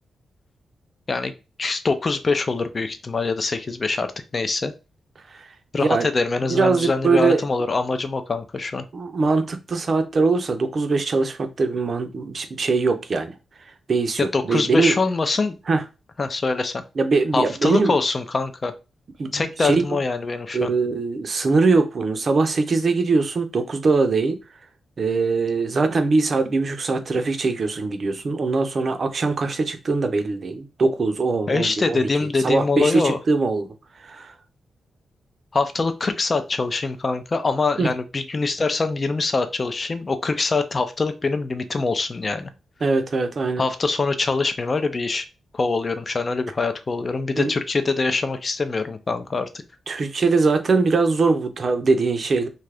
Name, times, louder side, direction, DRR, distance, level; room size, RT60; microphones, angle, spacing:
voice 1, 1.6-4.7 5.7-8.8 14.2-15.6 16.2-16.8 17.3-18.7 19.3-20.7 31.5-33.2 35.5-42.5 43.6-45.3 45.5-49.5, left 3 dB, 40° left, 0.5 m, -24 dB
voice 2, 5.8-6.1 6.5-7.4 8.9-13.3 13.9-15.0 15.7-15.8 17.0-17.9 19.2-19.8 20.5-24.4 25.0-32.1 32.4-33.7 34.0-34.3 37.8-37.9 42.8-43.6 47.4-47.5 49.9-52.5, right 3 dB, 50° right, 0.5 m, -22 dB
2.7 x 2.4 x 3.3 m
cardioid pair, 80°, 0 cm